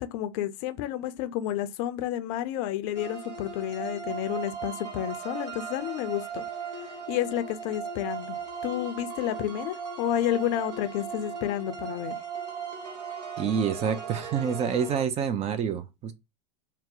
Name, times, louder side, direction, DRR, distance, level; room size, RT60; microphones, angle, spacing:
voice 1, 0.0-6.4 7.1-12.1, left 12 dB, 50° left, 0.5 m, -30 dB
sound 1, 2.9-15.0, right 6 dB, 75° right, 1.1 m, -37 dB
voice 2, 13.4-16.1, right 7 dB, 30° right, 0.5 m, -27 dB
2.8 x 2.1 x 3.8 m
hypercardioid pair, 95°, 21 cm